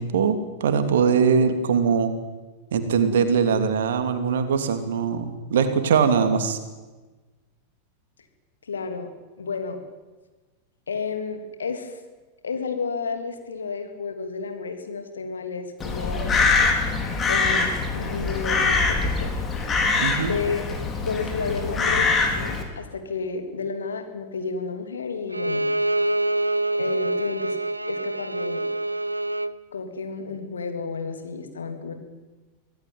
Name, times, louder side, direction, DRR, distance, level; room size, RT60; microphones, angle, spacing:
voice 1, 0.0-2.1 2.7-6.6 20.0-20.3, right 6 dB, 60° right, 8 dB, 2.8 m, -21 dB
voice 2, 8.6-9.1 9.4-9.8 10.9-12.0 12.4-16.5 17.3-19.3 20.0-20.7 21.0-25.7 26.8-27.6 27.8-28.6 29.7-31.9, left 5 dB, 70° left, 7 dB, 3.1 m, -31 dB
Crow, 15.8-22.6, left 4 dB, 20° left, 4.3 m, -23 dB
Bowed string instrument, 25.3-29.6, right 1 dB, 85° right, 0.7 m, -26 dB
24.5 x 17.0 x 9.3 m, 1.2 s
figure-of-eight pair, 90°, 0 cm